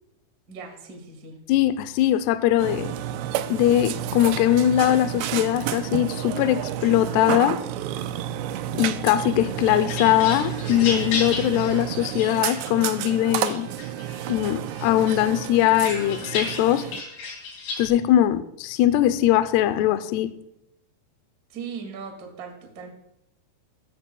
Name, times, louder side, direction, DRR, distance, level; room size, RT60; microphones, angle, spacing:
voice 1, 0.5-1.3 21.5-22.9, right 5 dB, 45° right, 2 dB, 1.2 m, -38 dB
voice 2, 1.5-2.9 3.5-7.6 8.8-13.7 14.3-16.9 17.8-20.3, left 13 dB, 90° left, 11 dB, 2.3 m, -21 dB
Burping eructation, 2.6-17.0, right 11 dB, 90° right, 2.4 m, -31 dB
sound 1, 9.4-13.0 13.5-14.4 14.8-17.9, left 4 dB, 70° left, 5.5 m, -33 dB
17.0 x 14.5 x 2.3 m, 0.80 s
omnidirectional pair, 5.6 m